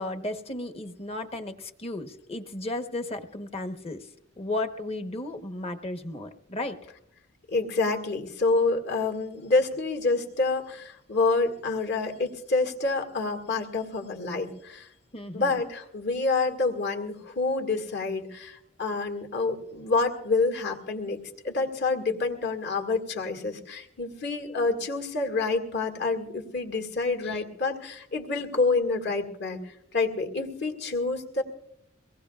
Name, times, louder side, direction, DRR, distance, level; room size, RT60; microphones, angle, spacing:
voice 1, 0.0-4.1 4.4-6.7 15.1-15.6 27.2-27.4, left 2 dB, 30° left, 6 dB, 1.0 m, -34 dB
voice 2, 7.5-14.9 15.3-31.4, left 3 dB, 55° left, 4 dB, 1.9 m, -28 dB
24.0 x 18.0 x 2.4 m, 0.76 s
head